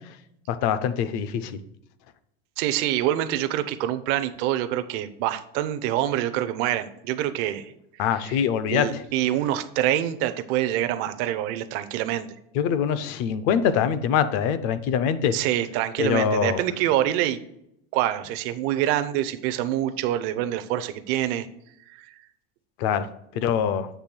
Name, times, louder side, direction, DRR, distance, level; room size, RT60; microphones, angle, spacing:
voice 1, 0.5-1.6 8.0-9.0 12.5-15.4 16.0-16.6 22.8-23.1 23.4-23.9, left 8 dB, 40° left, 13 dB, 0.5 m, -24 dB
voice 2, 2.6-7.7 8.2-8.4 8.7-12.3 15.3-17.4 17.9-21.5, right 12 dB, 35° right, 11 dB, 0.4 m, -26 dB
8.1 x 3.4 x 6.0 m, 0.77 s
supercardioid pair, 175°, 31 cm